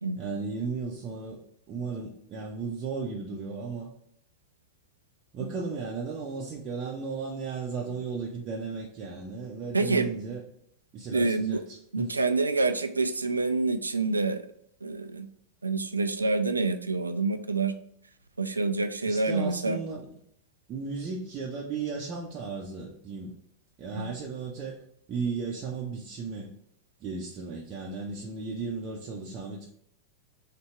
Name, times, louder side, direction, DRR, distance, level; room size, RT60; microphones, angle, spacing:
voice 1, 0.2-1.4 1.7-3.9 5.3-10.4 10.9-12.1 19.1-20.1 20.7-23.3 23.8-24.8 25.1-26.5 27.0-29.7, right 4 dB, 35° right, -3 dB, 0.6 m, -35 dB
voice 2, 9.7-10.1 11.1-11.6 11.9-14.4 14.8-15.3 15.6-17.7 18.4-19.8 24.0-24.1, right 3 dB, 80° right, 10 dB, 0.3 m, -27 dB
3.3 x 2.8 x 4.4 m, 0.69 s
figure-of-eight pair, 90°, 0 cm